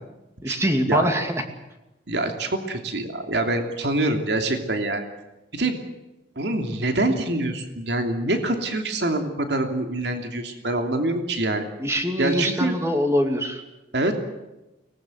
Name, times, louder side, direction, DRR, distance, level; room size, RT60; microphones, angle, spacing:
voice 1, 0.4-1.4 11.8-13.6, equal, 15° right, 5 dB, 2.5 m, -23 dB
voice 2, 2.1-5.1 5.5-5.8 6.4-11.7 12.2-12.7 13.9-14.2, right 2 dB, 65° right, 5 dB, 3.0 m, -25 dB
23.5 x 20.0 x 7.9 m, 1.0 s
head